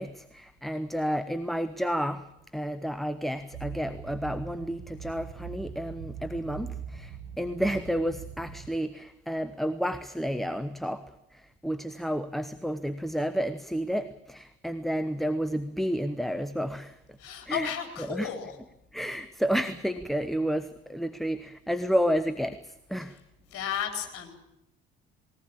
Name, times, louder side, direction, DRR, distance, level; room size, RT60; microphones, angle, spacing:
voice 1, 0.0-17.2 17.5-17.7 18.0-18.3 18.9-23.2, equal, ahead, 12 dB, 0.9 m, -31 dB
sound 1, 3.5-8.7, right 7 dB, 85° right, 4.9 m, -42 dB
voice 2, 17.2-18.5 23.5-24.3, left 9 dB, 45° left, 4 dB, 4.2 m, -33 dB
20.0 x 18.5 x 8.7 m, 0.83 s
figure-of-eight pair, 50°, 31 cm